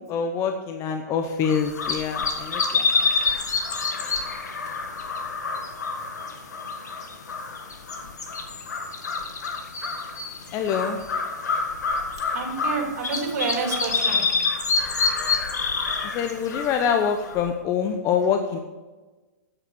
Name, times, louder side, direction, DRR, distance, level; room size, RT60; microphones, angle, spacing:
voice 1, 0.0-3.1 10.5-11.0 16.0-18.6, left 7 dB, 30° left, 5 dB, 0.9 m, -25 dB
sound 1, 1.4-17.5, left 4 dB, 80° left, 1.8 m, -27 dB
voice 2, 12.3-14.2, right 4 dB, 60° right, 2 dB, 3.1 m, -28 dB
9.0 x 8.1 x 6.8 m, 1.2 s
hypercardioid pair, 115°, 9 cm